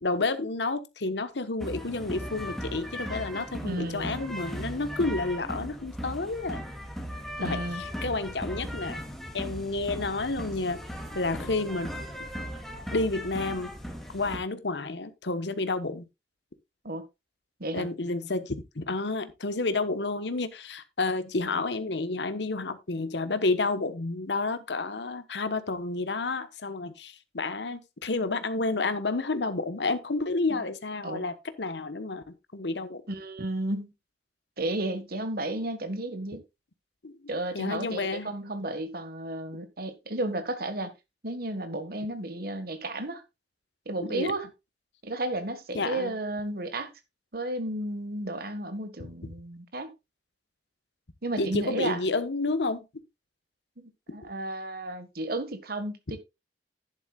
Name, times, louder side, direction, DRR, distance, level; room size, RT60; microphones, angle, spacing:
voice 1, 0.0-6.6 7.4-9.0 9.3-10.8 11.1-11.9 12.9-13.7 14.1-16.0 17.7-32.2 32.5-33.0 37.0-38.3 44.0-44.3 45.7-46.2 51.4-52.9 54.1-54.2, left 3 dB, 80° left, 1.2 m, -30 dB
sound 1, 1.6-14.4, equal, ahead, 2.6 m, -37 dB
voice 2, 3.6-4.1 7.4-7.8 16.8-17.0 17.6-17.9 30.5-30.6 31.0-31.2 33.1-33.9 34.6-36.4 37.3-40.9 41.2-43.2 43.9-44.5 45.0-46.9 47.3-49.9 51.2-52.0 53.8-56.2, right 1 dB, 60° right, 1.7 m, -33 dB
11.0 x 10.5 x 2.4 m
head